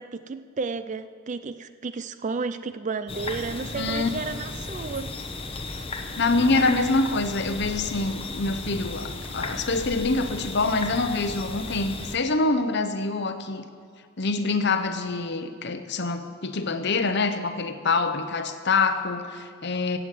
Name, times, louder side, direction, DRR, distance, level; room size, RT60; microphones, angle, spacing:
voice 1, 0.0-5.1, right 4 dB, 35° right, 12 dB, 0.4 m, -32 dB
sound 1, 3.1-12.2, left 2 dB, 25° left, 0.9 m, -35 dB
voice 2, 3.7-4.1 6.2-13.7 14.2-20.0, left 3 dB, 50° left, 9 dB, 0.9 m, -25 dB
16.5 x 8.1 x 7.7 m, 2.1 s
head